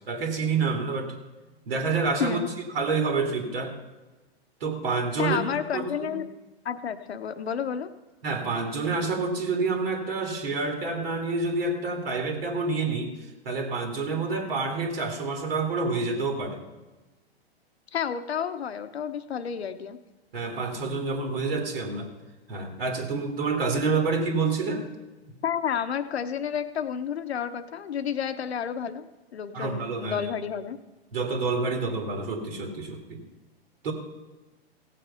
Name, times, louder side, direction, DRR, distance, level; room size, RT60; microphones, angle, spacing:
voice 1, 0.1-1.1 1.7-2.4 2.7-3.8 4.6-6.1 8.2-13.1 13.4-16.6 20.3-22.1 22.5-24.9 29.5-30.3 31.1-33.2 33.8-33.9, right 4 dB, 70° right, 3 dB, 2.6 m, -28 dB
voice 2, 5.2-6.3 6.6-7.9 17.9-20.0 25.4-29.1 29.3-30.8, left 8 dB, 80° left, 11 dB, 1.0 m, -30 dB
16.5 x 7.5 x 5.5 m, 1.2 s
hypercardioid pair, 125°, 31 cm